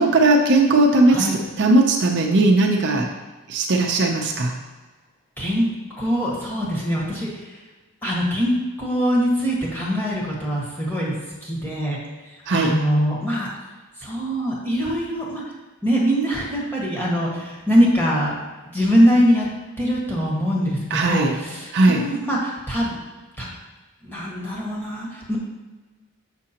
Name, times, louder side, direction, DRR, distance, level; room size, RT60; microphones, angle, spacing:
voice 1, 0.0-1.3 1.6-3.1 3.5-4.5 12.5-12.7 20.9-21.3 21.7-22.0, right 2 dB, 50° right, 1 dB, 0.6 m, -17 dB
voice 2, 1.1-1.4 5.4-7.6 8.0-11.1 11.4-12.0 12.2-13.5 14.0-15.4 15.8-18.4 18.7-19.5 19.8-22.9 23.4-23.5 24.0-25.4, equal, 10° left, -5 dB, 1.4 m, -22 dB
6.5 x 6.0 x 2.9 m, 1.2 s
head